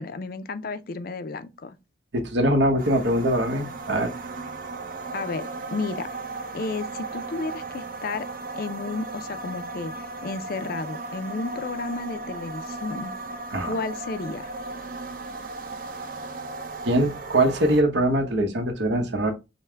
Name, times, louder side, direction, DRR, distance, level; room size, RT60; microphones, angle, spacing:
voice 1, 0.0-1.8 5.1-6.1 6.5-8.3 8.6-9.9 10.2-13.1 13.6-14.5, left 3 dB, 50° left, 0.5 m, -32 dB
voice 2, 2.1-4.1 13.5-13.7 16.8-19.3, right 1 dB, 70° right, 1.0 m, -22 dB
sound 1, 2.8-17.8, right 2 dB, 45° right, 0.6 m, -36 dB
5.5 x 2.2 x 3.3 m
head